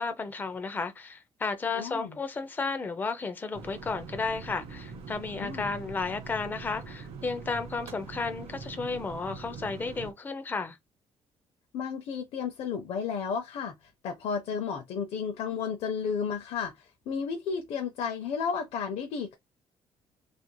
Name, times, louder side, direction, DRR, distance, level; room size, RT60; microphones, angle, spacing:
voice 1, 0.0-10.8, left 4 dB, 20° left, 0.4 m, -33 dB
voice 2, 1.7-2.2 5.4-5.7 11.7-13.7 14.0-19.4, left 6 dB, 70° left, 0.5 m, -33 dB
sound 1, 3.5-10.1, right 4 dB, 70° right, 0.8 m, -43 dB
3.0 x 2.5 x 2.2 m
cardioid pair, 180°, 10 cm